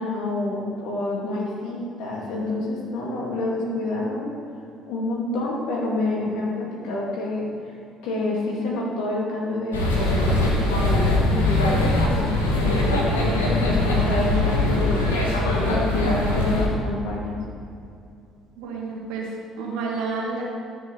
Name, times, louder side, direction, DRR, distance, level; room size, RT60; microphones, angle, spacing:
voice 1, 0.0-4.3 4.9-7.5 8.0-15.1 15.6-17.4, left 2 dB, 70° left, -4 dB, 2.5 m, -28 dB
sound 1, 9.7-16.7, left 2 dB, 85° left, 1.3 m, -22 dB
voice 2, 18.6-20.4, right 4 dB, 70° right, -2 dB, 1.9 m, -30 dB
13.0 x 6.6 x 4.2 m, 2.5 s
hypercardioid pair, 55°, 0 cm